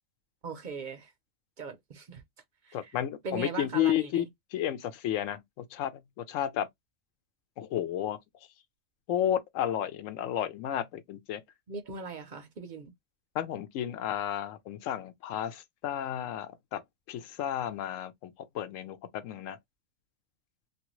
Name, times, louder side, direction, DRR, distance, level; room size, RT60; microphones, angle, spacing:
voice 1, 0.4-1.1 1.6-2.2 2.6-3.0 3.2-4.3 11.7-12.9, right 4 dB, 55° right, 0.5 m, -39 dB
voice 2, 2.7-4.3 4.5-5.9 6.2-6.7 7.6-8.2 9.1-11.4 13.3-16.8 17.1-19.6, left 11 dB, 80° left, 1.0 m, -32 dB
2.8 x 2.5 x 3.0 m
omnidirectional pair, 1.3 m